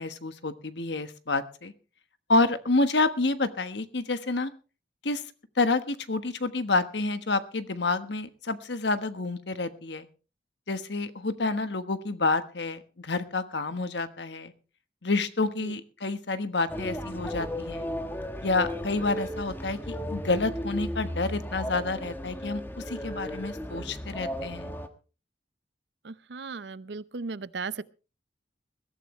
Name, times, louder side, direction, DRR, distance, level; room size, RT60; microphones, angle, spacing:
voice 1, 0.0-1.7 2.3-4.5 5.0-5.2 5.6-10.1 10.7-14.5 15.0-17.9 18.4-24.7, left 3 dB, 70° left, 1.3 m, -28 dB
sound 1, 16.7-24.9, equal, 10° left, 1.3 m, -35 dB
voice 2, 26.0-27.8, right 4 dB, 70° right, 0.6 m, -36 dB
21.5 x 13.5 x 3.2 m
head